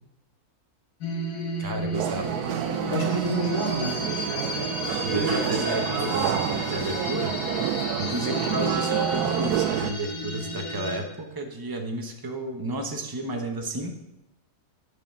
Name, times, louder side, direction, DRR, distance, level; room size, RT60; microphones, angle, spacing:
sound 1, 1.0-11.0, equal, 85° left, 1.8 m, -32 dB
voice 1, 1.6-2.4 5.0-7.3 8.0-14.0, right 1 dB, 20° right, 4 dB, 0.8 m, -32 dB
sound 2, 1.9-9.9, right 11 dB, 80° right, 1.1 m, -29 dB
voice 2, 2.7-4.0 5.0-5.4 5.7-6.4, right 2 dB, 30° left, -2 dB, 2.1 m, -29 dB
9.0 x 4.9 x 7.1 m, 0.91 s
omnidirectional pair, 1.6 m